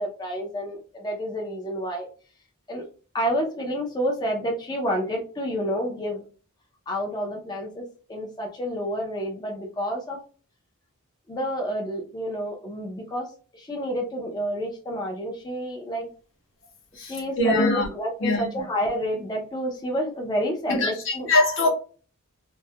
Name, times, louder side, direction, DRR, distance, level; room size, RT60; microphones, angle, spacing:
voice 1, 0.0-2.1 2.7-2.8 3.1-6.2 6.9-7.8 8.1-10.2 11.3-16.1 17.0-21.3, equal, 20° left, 0.4 m, -29 dB
voice 2, 17.0-17.9 18.2-18.5 20.7-21.7, left 2 dB, 60° left, 0.7 m, -23 dB
2.3 x 2.1 x 2.6 m
head